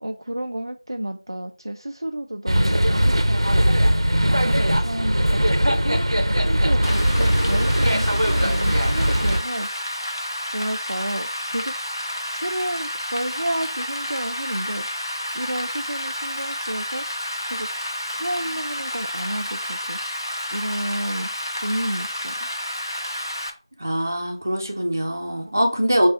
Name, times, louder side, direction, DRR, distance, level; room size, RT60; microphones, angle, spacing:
voice 1, 0.0-5.4 5.8-6.0 6.4-10.0 10.5-11.7 12.3-14.9 15.3-17.2 17.5-17.7 18.1-20.0 20.5-21.3 21.6-22.5, right 1 dB, 50° right, 4 dB, 0.3 m, -31 dB
sound 1, 2.5-9.4, equal, 80° right, 0.6 m, -20 dB
Rain, 6.8-23.5, left 1 dB, 55° left, 0.8 m, -30 dB
voice 2, 23.8-26.1, equal, 35° right, 2 dB, 0.7 m, -22 dB
4.9 x 2.4 x 4.0 m, 0.37 s
figure-of-eight pair, 175°, 3 cm